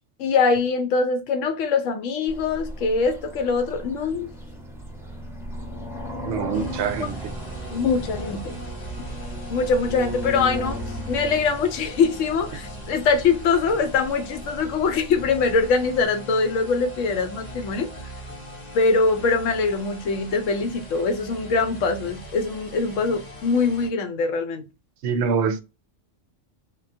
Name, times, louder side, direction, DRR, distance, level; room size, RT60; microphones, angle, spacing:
voice 1, 0.2-4.3 7.7-8.6 9.5-10.8 11.1-17.9 18.7-24.6, left 4 dB, 90° left, 1.0 m, -23 dB
sound 1, 2.3-16.0, equal, 5° right, 0.5 m, -36 dB
voice 2, 6.2-7.2 25.0-25.6, right 6 dB, 70° right, 0.8 m, -24 dB
sound 2, 6.5-23.9, equal, 35° left, 1.0 m, -40 dB
3.6 x 2.3 x 2.6 m
omnidirectional pair, 1.3 m